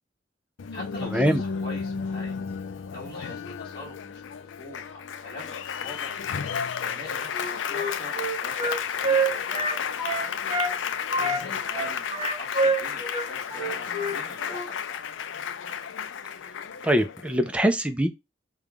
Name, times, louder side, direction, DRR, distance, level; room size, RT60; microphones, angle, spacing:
Applause, 0.6-17.6, left 7 dB, 85° left, 0.4 m, -32 dB
voice 1, 0.7-2.4 2.9-6.2 6.8-10.0 11.2-15.1, left 2 dB, 25° left, 1.4 m, -43 dB
Wind instrument woodwind instrument, 7.3-10.7 11.1-14.2 14.5-14.7, right 3 dB, 30° right, 1.3 m, -27 dB
voice 2, 16.8-18.1, equal, 5° right, 0.4 m, -23 dB
3.5 x 2.3 x 3.4 m
head